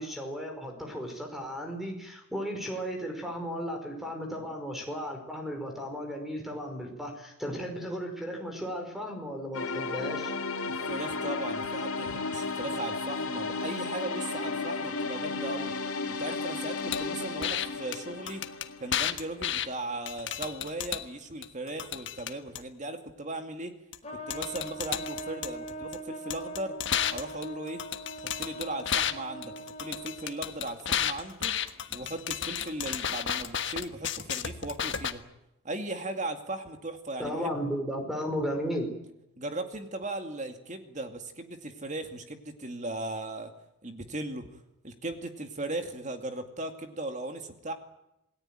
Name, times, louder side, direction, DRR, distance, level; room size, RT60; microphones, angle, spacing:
voice 1, 0.0-10.3 37.2-38.8, equal, ahead, 3 dB, 5.1 m, -35 dB
sound 1, 9.5-19.5, left 4 dB, 80° left, 3.0 m, -34 dB
voice 2, 10.6-15.7 16.2-18.4 18.8-23.7 24.3-26.7 27.1-27.8 28.2-31.6 31.9-35.2 35.6-37.5 39.4-43.5 43.8-44.5 44.8-47.7, right 2 dB, 35° right, 6 dB, 2.4 m, -37 dB
sound 2, 16.9-17.0 17.4-17.7 17.9-18.0 18.3-19.7 20.1-21.0 21.4-22.6 23.9-24.0 24.3-26.0 26.3-29.1 29.4-35.1, left 9 dB, 55° left, 1.4 m, -32 dB
Trumpet, 24.0-30.6, right 1 dB, 30° left, 3.5 m, -42 dB
27.5 x 18.5 x 9.1 m, 0.88 s
head